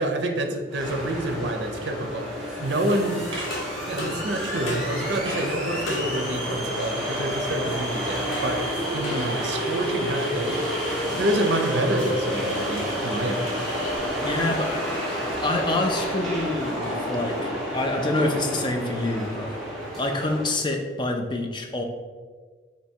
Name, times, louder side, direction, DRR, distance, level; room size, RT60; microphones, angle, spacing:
voice 1, 0.0-3.3 3.9-8.6 8.9-10.6 11.1-13.5, right 1 dB, 70° right, 5 dB, 0.5 m, -28 dB
sound 1, 0.7-20.6, equal, ahead, 0.9 m, -30 dB
sound 2, 1.8-1.9 2.4-2.6 2.9-3.6 4.5-4.7 5.0-5.5 6.8-7.1, right 1 dB, 25° right, 1.1 m, -38 dB
sound 3, 2.9-14.0, left 1 dB, 85° left, 0.9 m, -36 dB
voice 2, 14.2-15.0 15.4-19.5 20.0-21.8, left 2 dB, 25° left, 3 dB, 0.4 m, -27 dB
3.4 x 3.0 x 4.3 m, 1.5 s
head